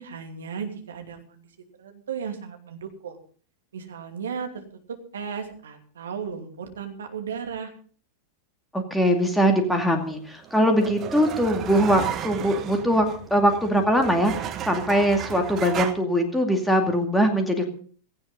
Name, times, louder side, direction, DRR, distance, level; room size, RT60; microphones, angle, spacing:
voice 1, 0.0-1.5 1.8-3.2 3.7-7.7, right 6 dB, 65° right, 5 dB, 2.7 m, -35 dB
voice 2, 8.7-17.6, equal, 5° left, 4 dB, 2.4 m, -22 dB
sound 1, 10.0-15.9, right 10 dB, 30° right, 1.4 m, -34 dB
17.0 x 15.5 x 3.9 m, 0.43 s
figure-of-eight pair, 90°, 0 cm